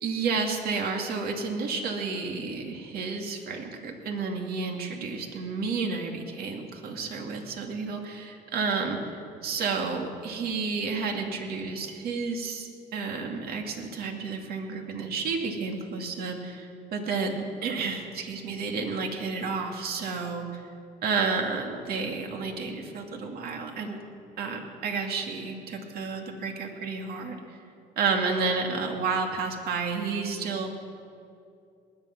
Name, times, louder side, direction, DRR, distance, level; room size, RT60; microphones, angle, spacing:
voice 1, 0.0-20.6 21.0-24.0 24.4-27.6 28.0-30.8, right 4 dB, 65° right, 2 dB, 2.4 m, -31 dB
19.5 x 11.0 x 6.1 m, 2.4 s
cardioid pair, 110°, 17 cm